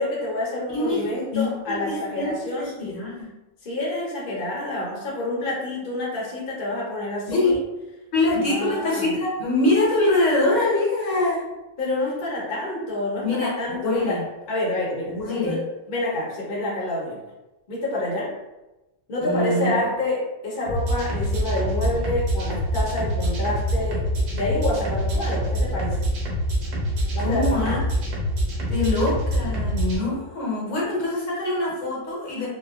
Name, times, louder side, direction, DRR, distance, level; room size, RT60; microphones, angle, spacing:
voice 1, 0.0-3.0 3.6-7.6 8.4-9.2 9.6-9.7 11.8-14.2 14.5-17.2 17.7-18.3 19.1-26.0 27.1-27.8, left 1 dB, 50° left, -4 dB, 0.9 m, -28 dB
voice 2, 0.7-1.0 1.3-3.3 7.3-7.6 8.1-11.4 13.2-14.2 15.1-15.6 19.2-19.8 27.2-27.8 28.7-32.5, left 2 dB, 80° left, -5 dB, 1.2 m, -24 dB
sound 1, 20.6-30.0, equal, 90° right, 1.1 m, -25 dB
3.0 x 2.2 x 2.3 m, 1.0 s
omnidirectional pair, 1.3 m